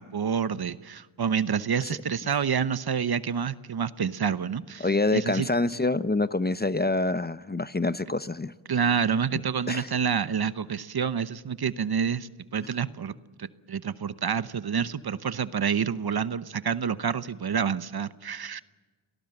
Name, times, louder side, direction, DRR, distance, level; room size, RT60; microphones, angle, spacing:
voice 1, 0.0-5.5 8.7-13.1 13.4-18.6, right 7 dB, 50° right, 14 dB, 0.9 m, -28 dB
voice 2, 4.8-8.5 9.7-9.9, left 2 dB, 20° left, 14 dB, 0.7 m, -26 dB
29.0 x 18.5 x 7.8 m, 1.3 s
cardioid pair, 55°, 48 cm